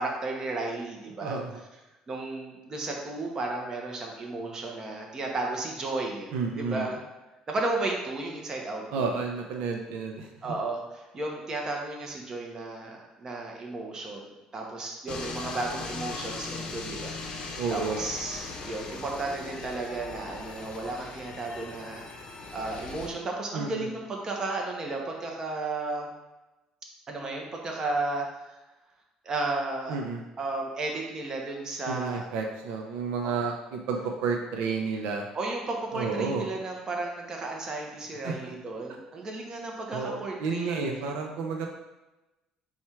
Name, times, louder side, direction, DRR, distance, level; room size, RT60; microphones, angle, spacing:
voice 1, 0.0-1.4 2.1-7.0 7.5-9.1 10.4-22.0 22.5-26.1 27.1-28.6 29.2-30.0 30.4-32.3 33.2-33.3 35.3-41.0, right 2 dB, 30° right, 0 dB, 0.8 m, -34 dB
voice 2, 1.2-1.5 6.3-6.9 8.9-10.6 17.6-18.0 23.5-23.9 29.9-30.2 31.9-35.3 35.9-36.5 38.2-38.5 39.9-41.7, right 5 dB, 90° right, 2 dB, 0.5 m, -31 dB
sound 1, 15.1-23.1, left 3 dB, 50° left, 0.6 m, -39 dB
4.2 x 2.4 x 4.4 m, 1.0 s
cardioid pair, 120°, 2 cm